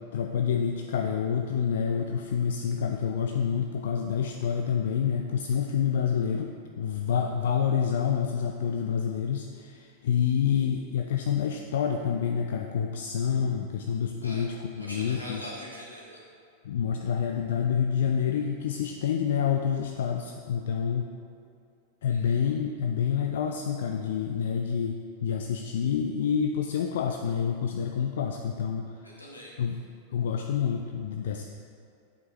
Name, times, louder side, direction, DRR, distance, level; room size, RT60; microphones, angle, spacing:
voice 1, 0.0-15.4 16.6-21.0 22.0-28.8 29.6-29.8 30.1-31.4, left 7 dB, 60° left, 3 dB, 0.3 m, -28 dB
voice 2, 14.8-16.2 22.1-22.4 29.0-29.5, equal, 85° left, -4 dB, 1.4 m, -42 dB
8.4 x 5.3 x 3.3 m, 2.4 s
figure-of-eight pair, 90°, 0 cm